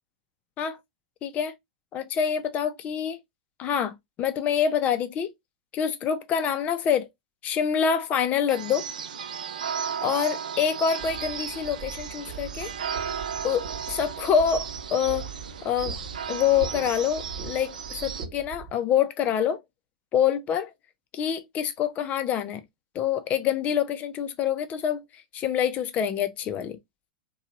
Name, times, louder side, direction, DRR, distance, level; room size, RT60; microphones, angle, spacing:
voice 1, 1.2-1.5 1.9-3.2 3.6-5.3 5.7-7.1 7.4-8.8 10.0-12.7 13.4-15.3 15.6-16.0 16.3-19.6 20.1-20.7 21.1-22.6 22.9-25.0 25.3-26.8, left 8 dB, 35° left, 0.6 m, -26 dB
sound 1, 8.5-18.3, right 7 dB, 75° right, 0.5 m, -35 dB
sound 2, 11.0-18.7, right 5 dB, 50° right, 1.2 m, -41 dB
2.8 x 2.3 x 2.8 m
hypercardioid pair, 100°, 4 cm